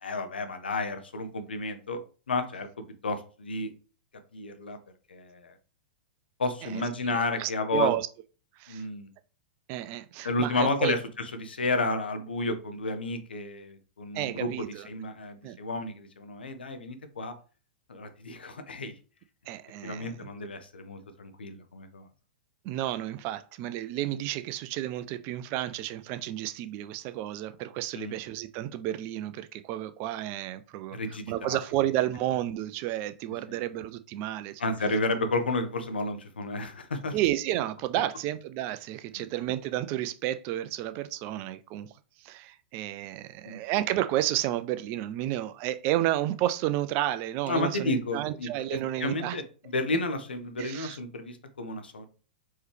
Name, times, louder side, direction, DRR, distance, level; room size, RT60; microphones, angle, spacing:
voice 1, 0.0-2.0 2.3-2.7 3.0-3.7 4.3-4.8 5.1-5.5 6.4-7.9 8.7-9.1 10.2-17.3 17.9-18.9 19.8-22.1 27.9-28.2 30.9-31.6 33.5-33.6 34.6-37.2 39.2-39.3 43.4-43.6 47.5-52.1, left 2 dB, 80° left, 0.7 m, -31 dB
voice 2, 6.6-8.1 8.6-8.8 9.7-11.0 14.1-14.9 15.4-15.6 19.5-20.2 22.6-31.0 31.3-34.6 37.1-41.9 42.2-49.4 50.6-51.0, right 13 dB, 40° right, 0.4 m, -31 dB
4.5 x 3.1 x 3.3 m
hypercardioid pair, 105°, 5 cm